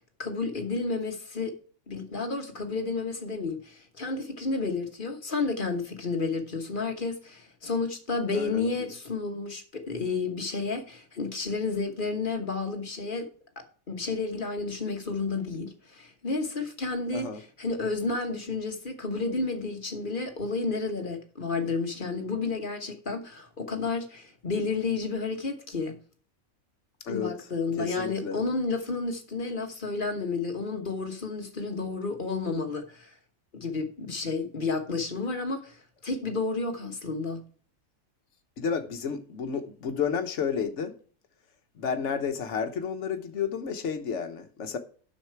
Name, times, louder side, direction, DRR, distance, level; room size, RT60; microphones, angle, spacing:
voice 1, 0.2-1.5 1.9-13.3 13.6-26.0 27.1-33.1 33.5-37.4, left 4 dB, 40° left, 1.3 m, -31 dB
voice 2, 8.3-8.9 17.1-17.4 27.0-27.3 27.8-28.4 38.6-40.9 41.8-44.8, left 6 dB, 55° left, 1.3 m, -31 dB
9.8 x 6.7 x 4.6 m
omnidirectional pair, 1.5 m